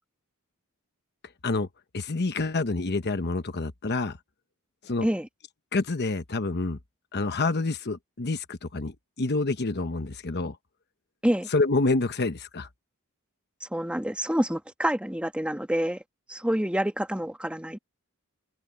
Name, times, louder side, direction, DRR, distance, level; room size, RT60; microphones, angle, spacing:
voice 1, 1.9-4.2 4.8-5.1 5.7-6.8 7.1-10.6 11.5-12.7, left 3 dB, 50° left, 1.0 m, -27 dB
voice 2, 13.6-16.0 16.3-17.8, equal, 5° right, 1.6 m, -27 dB
head